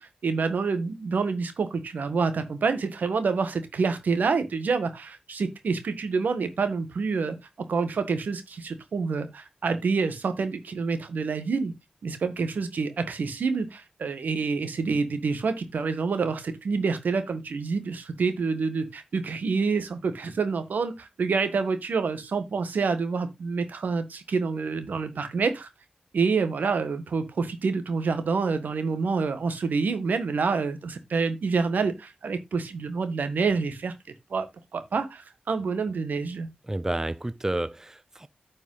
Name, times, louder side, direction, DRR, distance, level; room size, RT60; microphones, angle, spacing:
voice 1, 0.0-11.7 12.0-25.7 26.1-33.9 34.3-34.5 34.7-36.5, right 4 dB, 90° right, 1.5 m, -27 dB
voice 2, 36.7-38.3, right 1 dB, 20° right, 0.5 m, -30 dB
9.6 x 5.3 x 3.8 m
wide cardioid pair, 65°, 3 cm